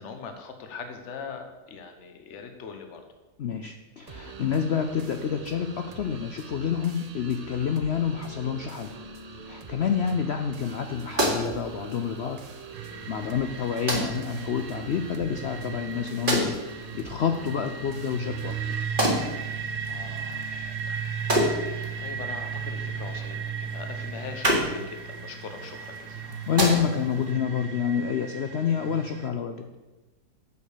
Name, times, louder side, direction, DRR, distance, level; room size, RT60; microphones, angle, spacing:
voice 1, 0.0-3.0 10.0-10.2 19.9-21.0 21.3-26.2, left 5 dB, 50° left, 6 dB, 1.2 m, -41 dB
voice 2, 3.4-8.9 9.4-12.4 13.1-18.7 26.5-29.7, left 7 dB, 70° left, 6 dB, 0.6 m, -28 dB
sound 1, 4.1-18.8, right 4 dB, 60° right, 0.4 m, -44 dB
sound 2, 10.6-27.3, right 1 dB, 30° right, 2.0 m, -32 dB
sound 3, 12.7-29.3, right 6 dB, 75° right, 1.3 m, -36 dB
9.1 x 5.2 x 6.8 m, 1.1 s
omnidirectional pair, 1.7 m